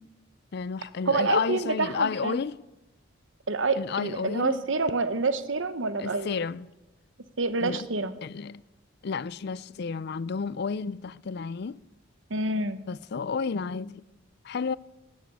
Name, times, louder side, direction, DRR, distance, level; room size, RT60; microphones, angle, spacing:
voice 1, 0.5-2.6 3.8-4.6 6.0-6.7 7.6-7.9 8.2-8.6 9.0-11.8 12.9-14.0 14.4-14.8, left 5 dB, 55° left, 0.4 m, -31 dB
voice 2, 1.1-2.4 3.5-6.4 7.4-8.1 12.3-12.8, right 3 dB, 70° right, 1.0 m, -27 dB
17.5 x 9.4 x 8.6 m
head